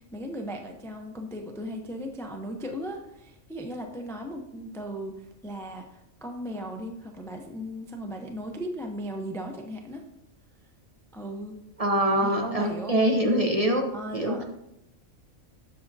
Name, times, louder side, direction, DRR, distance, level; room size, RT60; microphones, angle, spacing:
voice 1, 0.0-10.0 11.1-11.6 12.2-13.0 13.9-14.4, equal, 5° left, 3 dB, 0.3 m, -37 dB
voice 2, 11.8-13.8 14.1-14.4, right 1 dB, 35° right, 2 dB, 0.6 m, -24 dB
7.5 x 6.9 x 2.6 m, 0.84 s
omnidirectional pair, 1.4 m